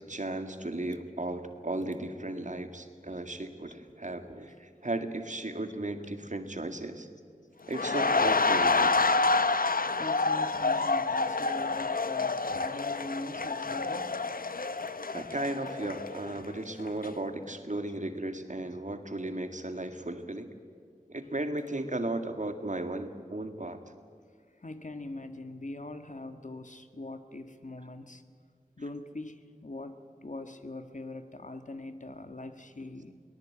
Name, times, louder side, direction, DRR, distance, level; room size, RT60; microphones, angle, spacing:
voice 1, 0.0-7.1 7.7-9.0 15.1-20.5 21.1-23.8, right 2 dB, 55° right, 7 dB, 2.1 m, -35 dB
sound 1, 7.7-16.6 16.9-17.1, left 3 dB, 75° left, 0.9 m, -28 dB
voice 2, 9.9-14.3 24.6-28.2 28.8-33.1, left 2 dB, 55° left, 8 dB, 1.6 m, -42 dB
22.5 x 19.0 x 8.8 m, 2.1 s
wide cardioid pair, 40°, 15 cm